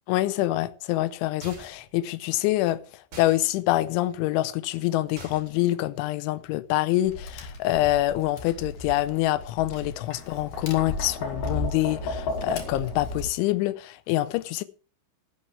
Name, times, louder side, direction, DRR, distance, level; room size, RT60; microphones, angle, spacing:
voice 1, 0.1-2.8 3.2-14.6, left 16 dB, 80° left, 2.9 m, -26 dB
sound 1, 1.4-1.9 3.1-3.4 5.2-5.7, right 3 dB, 30° right, 3.1 m, -44 dB
Tap, 7.0-13.3, left 2 dB, 50° left, 2.4 m, -34 dB
12.0 x 11.0 x 4.7 m
omnidirectional pair, 5.9 m